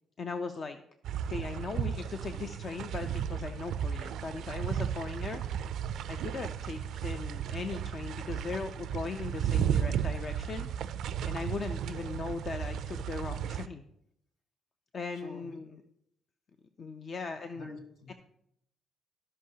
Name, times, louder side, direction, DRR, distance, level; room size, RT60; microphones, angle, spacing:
voice 1, 0.2-0.8 1.3-5.4 6.1-10.7 11.2-13.8 14.9-15.8 16.8-17.7 18.1-18.2, left 4 dB, 50° left, 7 dB, 0.5 m, -38 dB
sound 1, 1.0-13.7, right 9 dB, 75° right, 0.3 m, -34 dB
voice 2, 15.1-15.6 17.5-18.1, left 2 dB, 75° left, 1 dB, 1.9 m, -46 dB
14.0 x 5.5 x 2.8 m, 0.76 s
cardioid pair, 90°, 0 cm